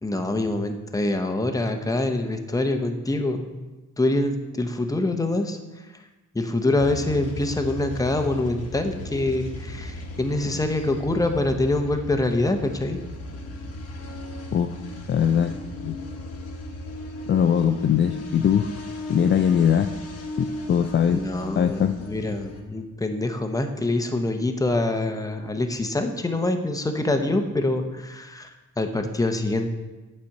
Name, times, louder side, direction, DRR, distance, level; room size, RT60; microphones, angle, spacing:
voice 1, 0.0-6.0 6.3-13.0 21.1-29.7, left 2 dB, 10° left, 6 dB, 0.9 m, -25 dB
sound 1, 6.8-22.6, left 1 dB, 55° left, 1.3 m, -36 dB
voice 2, 15.1-15.6 15.8-15.9 17.3-18.8 19.1-19.9 20.4-21.2 21.6-21.9, left 8 dB, 40° left, 6 dB, 0.4 m, -21 dB
8.7 x 4.3 x 6.5 m, 1.2 s
cardioid pair, 90°, 30 cm